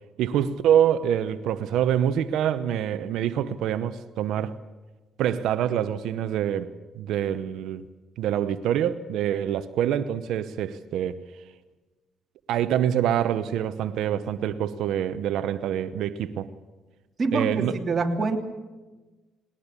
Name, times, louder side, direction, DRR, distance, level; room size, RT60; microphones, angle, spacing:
voice 1, 0.2-4.5 5.2-7.8 8.2-11.1 12.5-16.5 17.3-17.8, right 10 dB, 85° right, 0.9 m, -25 dB
voice 2, 17.2-18.4, right 3 dB, 35° right, 3.0 m, -25 dB
20.0 x 19.5 x 8.3 m
cardioid pair, 90°, 0 cm